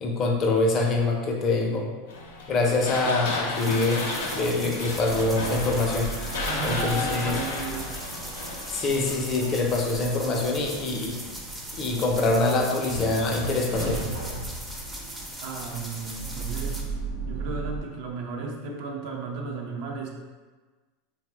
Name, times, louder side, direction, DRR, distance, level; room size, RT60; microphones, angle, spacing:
voice 1, 0.0-1.9 2.5-4.0 4.3-6.1 6.6-7.4 8.7-11.2 11.8-14.0, left 2 dB, 40° left, 0 dB, 0.5 m, -24 dB
sound 1, 2.1-9.7, left 3 dB, 85° left, 0.5 m, -34 dB
sound 2, 2.3-2.8 3.2-17.8, right 2 dB, 85° right, 0.8 m, -36 dB
sound 3, 3.5-16.8, right 1 dB, 10° right, 0.5 m, -39 dB
voice 2, 6.4-7.9 15.4-16.8 17.3-20.1, right 4 dB, 60° right, 1 dB, 0.5 m, -34 dB
2.7 x 2.0 x 3.3 m, 1.3 s
hypercardioid pair, 115°, 0 cm